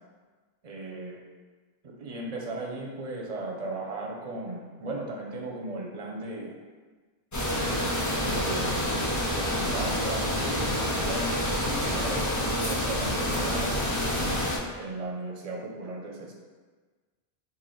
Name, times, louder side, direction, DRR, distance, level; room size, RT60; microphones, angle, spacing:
voice 1, 0.6-1.2 1.8-6.5 8.1-8.9 9.3-13.8 14.8-16.3, right 2 dB, 45° right, -1 dB, 0.6 m, -36 dB
sound 1, 7.3-14.6, left 1 dB, 30° left, 0.3 m, -28 dB
3.2 x 2.6 x 4.0 m, 1.4 s
omnidirectional pair, 1.0 m